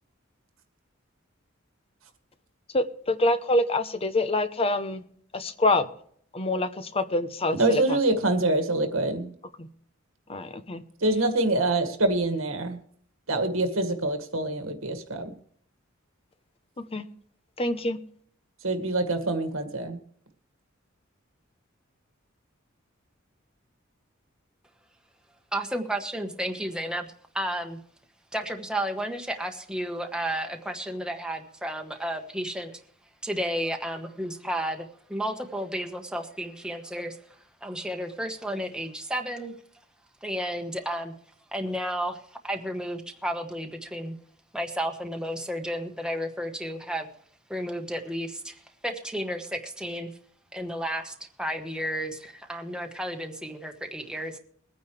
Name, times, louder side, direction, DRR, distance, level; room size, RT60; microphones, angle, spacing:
voice 1, 2.7-5.0 5.3-5.9 6.3-8.0 9.6-9.7 10.3-10.8 16.8-17.0 17.6-18.0, left 2 dB, 30° left, 11 dB, 0.8 m, -26 dB
voice 2, 7.6-9.3 11.0-12.8 13.3-15.3 18.6-20.0, right 2 dB, 90° right, 7 dB, 1.9 m, -25 dB
voice 3, 25.5-27.1 27.3-27.8 28.3-32.8 33.2-37.2 37.6-39.5 40.2-41.1 41.5-44.2 44.5-47.1 47.5-48.6 48.8-50.1 50.5-54.4, equal, 5° right, 4 dB, 1.3 m, -32 dB
22.5 x 9.4 x 3.3 m, 0.62 s
head